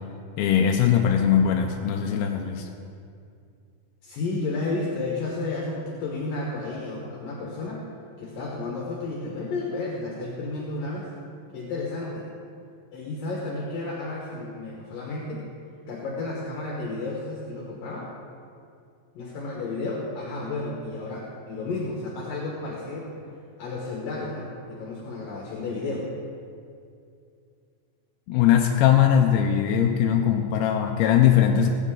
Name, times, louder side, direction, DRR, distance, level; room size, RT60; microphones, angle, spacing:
voice 1, 0.4-2.7 28.3-31.7, left 9 dB, 80° left, 2 dB, 2.5 m, -20 dB
voice 2, 4.0-7.8 8.2-11.1 11.5-12.3 12.9-15.5 15.9-18.1 19.1-23.1 23.6-26.1, left 3 dB, 65° left, -3 dB, 2.9 m, -32 dB
20.0 x 9.2 x 3.8 m, 2.4 s
omnidirectional pair, 4.6 m